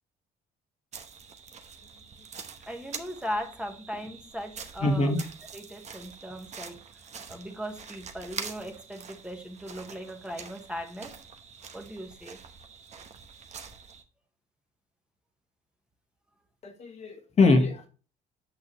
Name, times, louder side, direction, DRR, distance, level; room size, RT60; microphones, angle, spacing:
sound 1, 0.9-14.0, right 6 dB, 45° right, 1.0 m, -45 dB
voice 1, 2.7-5.1 5.5-6.8 7.3-11.2 11.7-12.4, equal, 5° right, 3 dB, 1.3 m, -38 dB
voice 2, 4.8-5.2 16.6-17.9, left 3 dB, 40° left, 4 dB, 1.4 m, -23 dB
8.5 x 6.4 x 3.1 m, 0.35 s
cardioid pair, 110°, 17 cm